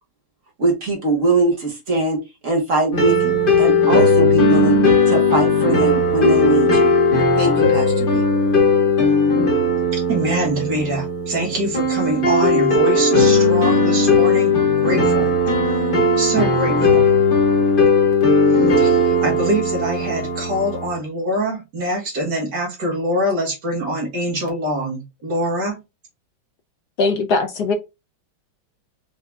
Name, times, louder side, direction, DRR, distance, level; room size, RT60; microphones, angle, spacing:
voice 1, 0.6-4.8 5.1-6.9 7.3-8.2, right 2 dB, 45° right, 1.6 m, -21 dB
sound 1, 2.9-20.9, left 2 dB, 35° left, 1.0 m, -17 dB
voice 2, 9.9-15.3 16.2-17.1 18.8-25.8, right 1 dB, 60° right, 1.9 m, -24 dB
voice 3, 27.0-27.7, left 3 dB, 65° left, 1.1 m, -20 dB
4.7 x 2.8 x 3.2 m
omnidirectional pair, 2.1 m